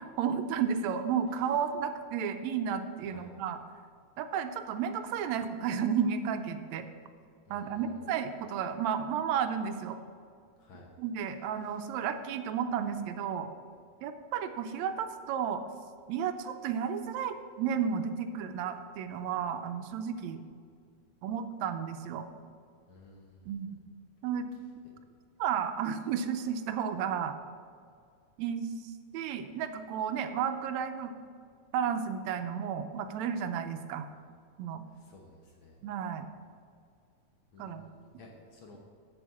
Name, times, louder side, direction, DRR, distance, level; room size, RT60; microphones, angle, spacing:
voice 1, 0.2-3.6 4.2-6.9 7.5-10.0 11.0-13.5 14.0-15.6 16.1-20.4 21.2-22.3 23.5-23.8 24.2-24.5 25.4-27.4 28.4-31.1 31.7-34.1 34.6-34.8 35.8-36.3 37.6-37.8, right 7 dB, 80° right, 9 dB, 1.9 m, -32 dB
voice 2, 7.5-8.1 10.6-10.9 11.6-11.7 22.9-23.5 34.9-35.8 37.5-38.8, left 2 dB, 60° left, 0 dB, 1.5 m, -54 dB
8.1 x 7.8 x 7.4 m, 2.1 s
omnidirectional pair, 3.3 m